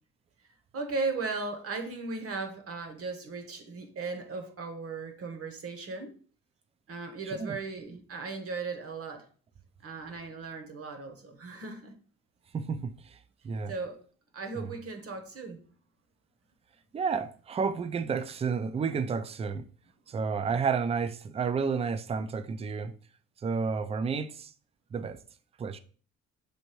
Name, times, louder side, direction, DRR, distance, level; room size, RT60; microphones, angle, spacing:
voice 1, 0.7-6.2 6.9-9.3 9.8-11.9 13.7-14.0 14.3-15.6 20.5-20.6, right 4 dB, 50° right, 1.0 m, -37 dB
voice 2, 7.3-7.6 12.5-13.2 13.4-13.7 14.6-14.7 16.9-19.7 20.1-22.9 23.4-24.5 24.9-25.2 25.6-25.8, right 5 dB, 20° right, 0.3 m, -31 dB
6.4 x 2.6 x 3.0 m
cardioid pair, 90°, 30 cm